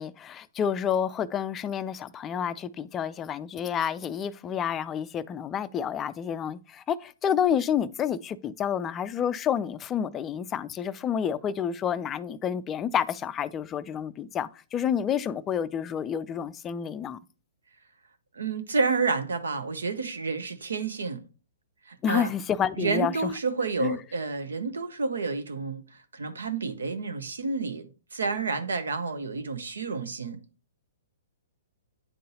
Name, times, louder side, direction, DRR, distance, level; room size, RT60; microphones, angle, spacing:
voice 1, 0.0-17.2 22.0-23.3 23.8-24.0, left 8 dB, 20° left, 0.3 m, -29 dB
voice 2, 18.3-21.2 21.9-22.3 22.8-25.8 26.1-30.4, right 4 dB, 80° right, 0.8 m, -30 dB
9.3 x 3.8 x 2.8 m
hypercardioid pair, 125°, 0 cm